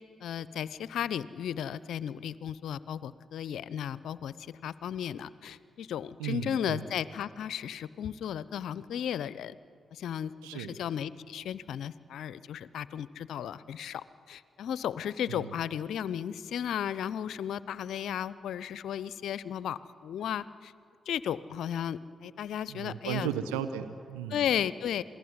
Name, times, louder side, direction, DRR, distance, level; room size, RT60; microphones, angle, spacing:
voice 1, 0.2-9.6 9.9-20.7 21.1-23.3 24.3-25.0, left 9 dB, 70° left, 17 dB, 0.7 m, -35 dB
voice 2, 6.2-6.9 10.4-10.8 15.2-15.5 22.7-24.5, right 9 dB, 85° right, 10 dB, 0.9 m, -35 dB
27.0 x 19.0 x 9.6 m, 2.3 s
hypercardioid pair, 40°, 0 cm